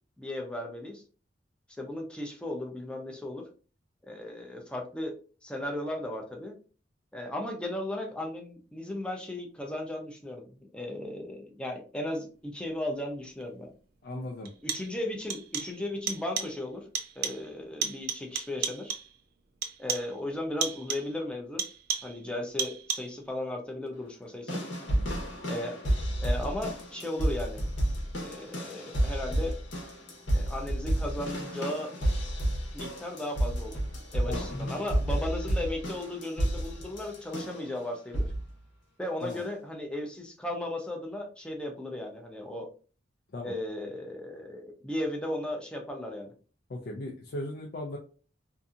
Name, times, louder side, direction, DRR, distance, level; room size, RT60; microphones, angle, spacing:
voice 1, 0.2-1.0 1.8-3.5 4.0-5.1 5.4-6.5 7.1-13.7 14.6-16.8 17.2-18.9 19.8-21.6 22.0-24.6 25.5-25.8 26.2-27.6 28.2-29.6 30.3-31.9 32.7-33.8 34.1-38.2 39.0-42.7 43.4-46.3, left 1 dB, 5° left, 1 dB, 0.5 m, -36 dB
sound 1, 13.4-13.5 14.4-15.0 15.3-16.6 16.9-17.5 17.8-19.2 19.6-20.2 20.6-21.2 21.6-22.2 22.6-23.2, right 7 dB, 55° right, 0.4 m, -34 dB
voice 2, 14.0-14.5 24.8-25.3 34.3-34.5 39.2-39.4 43.3-43.6 46.7-48.0, left 1 dB, 55° left, 0 dB, 0.4 m, -38 dB
sound 2, 24.5-37.7 38.1-38.5 39.3-39.4, right 1 dB, 90° left, 1.0 m, -31 dB
2.7 x 2.6 x 2.4 m, 0.37 s
head